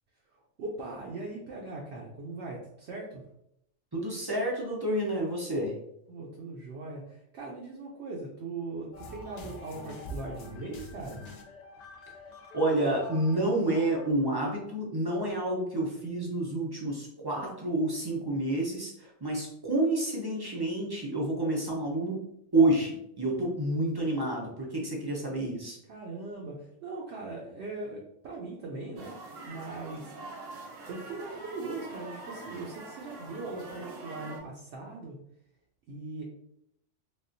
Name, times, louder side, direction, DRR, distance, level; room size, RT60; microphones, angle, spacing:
voice 1, 0.3-3.2 6.1-11.2 25.9-29.2 29.5-30.1 30.9-35.2 35.9-36.2, right 3 dB, 65° right, -3 dB, 0.8 m, -40 dB
voice 2, 3.9-5.8 12.5-25.8, right 1 dB, 35° right, -3 dB, 0.3 m, -29 dB
sound 1, 8.9-14.1, left 1 dB, 70° left, 0.4 m, -45 dB
sound 2, 29.0-34.4, right 2 dB, 90° right, 1.1 m, -44 dB
3.5 x 2.3 x 2.5 m, 0.76 s
omnidirectional pair, 1.2 m